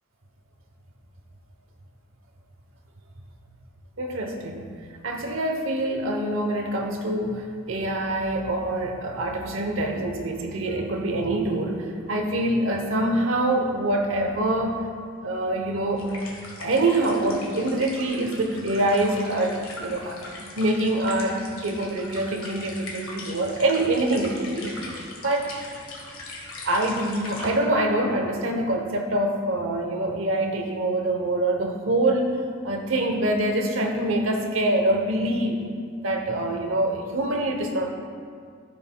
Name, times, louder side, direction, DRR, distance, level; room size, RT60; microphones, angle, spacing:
voice 1, 4.0-4.7 5.0-14.8 15.2-16.1 16.6-25.5 26.6-35.6 36.0-37.9, right 1 dB, 70° right, 3 dB, 0.9 m, -25 dB
sound 1, 16.0-27.5, left 2 dB, 90° left, 1.5 m, -40 dB
13.5 x 5.5 x 2.2 m, 2.1 s
head